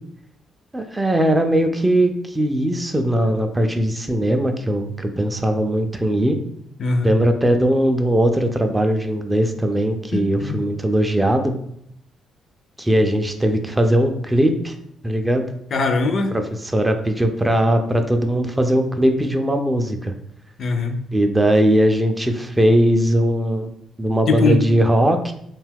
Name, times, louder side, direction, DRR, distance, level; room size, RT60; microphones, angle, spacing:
voice 1, 0.7-6.4 7.0-11.5 12.8-14.8 15.0-15.4 16.3-20.1 21.1-23.7 24.0-25.3, right 1 dB, 15° right, 6 dB, 0.3 m, -19 dB
voice 2, 6.8-7.1 10.1-10.6 15.7-16.3 20.6-21.0 24.3-24.6, left 3 dB, 55° left, 6 dB, 0.4 m, -21 dB
2.7 x 2.2 x 3.4 m, 0.72 s
cardioid pair, 90°, 0 cm